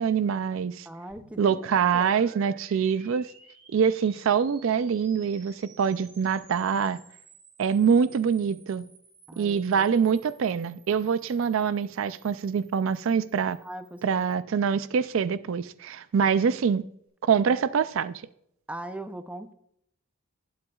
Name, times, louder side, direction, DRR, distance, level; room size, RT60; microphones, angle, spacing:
voice 1, 0.0-0.9 1.4-3.3 3.7-7.0 7.6-8.9 9.4-13.6 14.0-16.8 17.2-18.2, right 6 dB, 65° right, 0.3 m, -25 dB
voice 2, 0.9-1.6 1.9-2.5 7.9-8.0 9.3-9.9 13.6-14.0 18.7-19.5, right 1 dB, 5° right, 0.5 m, -40 dB
sound 1, 1.1-14.4, right 4 dB, 40° right, 4.9 m, -55 dB
20.0 x 7.9 x 2.3 m
head